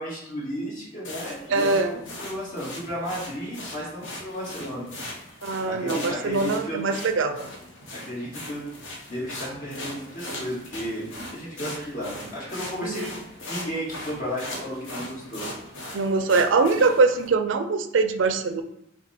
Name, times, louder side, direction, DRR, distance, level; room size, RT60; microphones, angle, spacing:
voice 1, 0.0-4.9 5.6-6.8 7.9-8.6 9.1-15.4 15.8-15.9, equal, 45° left, -5 dB, 1.8 m, -33 dB
sound 1, 1.0-17.3, left 1 dB, 80° left, 1.1 m, -39 dB
voice 2, 1.5-2.0 5.4-7.5 12.8-13.1 15.9-18.6, right 4 dB, 75° right, 8 dB, 0.4 m, -23 dB
5.5 x 2.3 x 4.2 m, 0.80 s
head